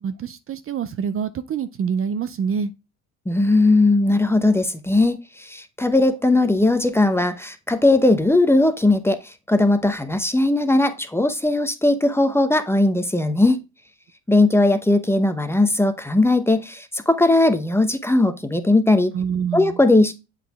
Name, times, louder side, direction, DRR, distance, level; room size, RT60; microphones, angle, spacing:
voice 1, 0.0-2.7 19.1-19.8, right 7 dB, 40° right, 0.5 m, -26 dB
voice 2, 3.3-13.6 14.3-19.1 19.5-20.1, left 2 dB, 5° left, 0.7 m, -18 dB
7.5 x 4.1 x 3.4 m
supercardioid pair, 95°, 36 cm